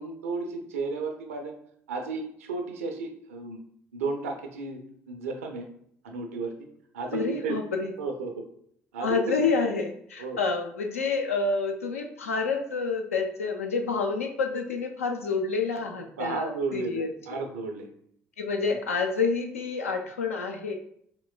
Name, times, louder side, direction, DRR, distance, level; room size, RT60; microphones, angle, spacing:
voice 1, 0.0-1.5 1.9-3.6 3.9-4.8 5.1-5.7 6.0-6.7 6.9-7.6 8.0-8.4 8.9-9.4 10.2-10.4 16.2-17.9, right 3 dB, 80° right, 4 dB, 0.4 m, -33 dB
voice 2, 7.1-7.9 9.0-17.4 18.4-20.7, left 4 dB, 85° left, 3 dB, 0.4 m, -28 dB
4.4 x 3.0 x 2.2 m, 0.67 s
figure-of-eight pair, 50°, 7 cm